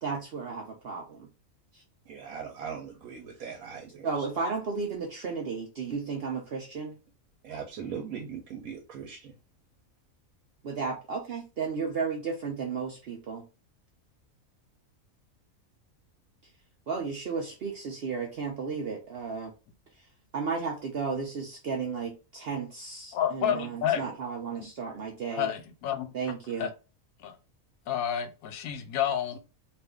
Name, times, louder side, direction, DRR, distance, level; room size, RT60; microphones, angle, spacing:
voice 1, 0.0-1.3 1.7-1.8 4.0-7.0 10.6-13.4 16.9-19.5 20.3-25.5 26.1-26.7, right 5 dB, 55° right, 0.7 m, -33 dB
voice 2, 2.1-4.3 7.4-9.3, right 7 dB, 85° right, 1.1 m, -40 dB
voice 3, 23.1-24.0 25.4-26.1 26.6-26.7 27.2-27.3 27.9-29.3, left 10 dB, 90° left, 1.1 m, -29 dB
2.6 x 2.5 x 3.5 m
omnidirectional pair, 1.4 m